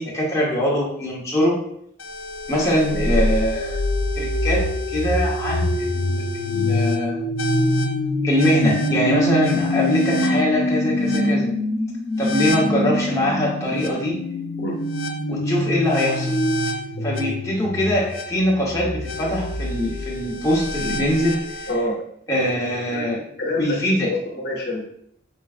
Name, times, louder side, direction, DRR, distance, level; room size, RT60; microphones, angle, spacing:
voice 1, 0.0-1.5 2.5-3.8 4.1-4.6 4.9-7.2 8.2-11.5 12.2-14.2 15.3-16.3 17.0-21.7 22.3-23.2 23.6-24.1, left 1 dB, 15° left, -5 dB, 1.0 m, -22 dB
sound 1, 2.0-21.7, left 1 dB, 90° left, 0.6 m, -24 dB
voice 2, 21.7-22.0 22.9-24.8, left 1 dB, 55° left, -2 dB, 0.8 m, -27 dB
5.4 x 3.3 x 2.4 m, 0.72 s
head